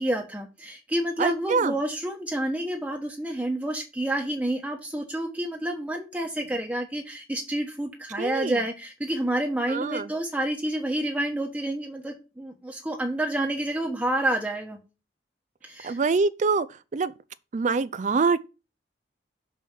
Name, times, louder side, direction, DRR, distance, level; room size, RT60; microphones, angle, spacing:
voice 1, 0.0-14.8 15.6-16.0, right 1 dB, 10° right, 1.1 m, -29 dB
voice 2, 1.2-1.7 8.2-8.6 9.7-10.1 15.8-16.7 16.9-17.1 17.5-18.4, right 4 dB, 40° right, 0.4 m, -24 dB
6.1 x 5.4 x 6.1 m
head